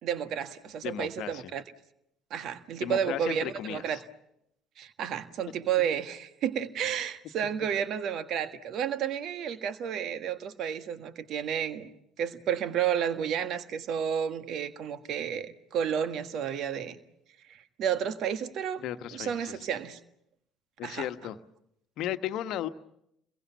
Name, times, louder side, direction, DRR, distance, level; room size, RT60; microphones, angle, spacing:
voice 1, 0.0-1.6 2.3-4.0 4.8-11.9 12.2-17.0 17.5-18.8 19.1-20.0 20.8-21.1, right 8 dB, 55° right, 11 dB, 1.6 m, -31 dB
voice 2, 0.8-1.4 2.8-4.0 18.8-19.6 20.8-21.4 22.0-22.7, left 12 dB, 55° left, 11 dB, 1.2 m, -35 dB
29.5 x 22.5 x 7.2 m, 0.79 s
figure-of-eight pair, 55°, 0 cm